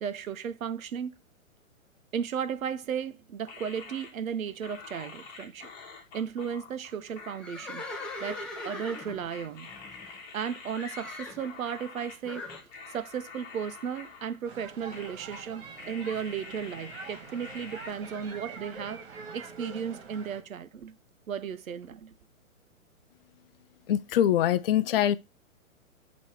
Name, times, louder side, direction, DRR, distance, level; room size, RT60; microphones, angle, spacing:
voice 1, 0.0-1.2 2.1-5.7 6.1-7.8 8.2-9.7 10.1-12.5 12.9-20.9 21.3-22.1, right 7 dB, 75° right, 0.8 m, -35 dB
sound 1, 3.5-12.2 12.5-14.6 14.9-15.5 15.8-17.9, left 4 dB, 25° left, 1.5 m, -47 dB
Livestock farm animals working animals, 7.3-10.4 10.8-11.5 12.2-12.6, left 2 dB, ahead, 0.8 m, -40 dB
sound 2, 14.4-20.4, right 4 dB, 50° right, 1.8 m, -45 dB
voice 2, 23.9-25.2, left 11 dB, 45° left, 0.5 m, -23 dB
8.1 x 3.1 x 4.5 m
hypercardioid pair, 130°, 42 cm